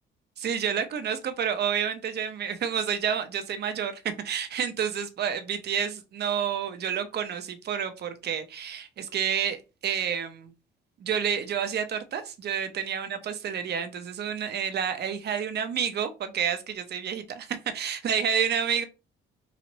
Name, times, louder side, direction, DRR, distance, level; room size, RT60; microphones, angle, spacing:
voice 1, 0.4-10.5 11.0-18.8, right 8 dB, 55° right, 9 dB, 0.6 m, -29 dB
3.1 x 2.4 x 4.0 m, 0.29 s
cardioid pair, 90°, 20 cm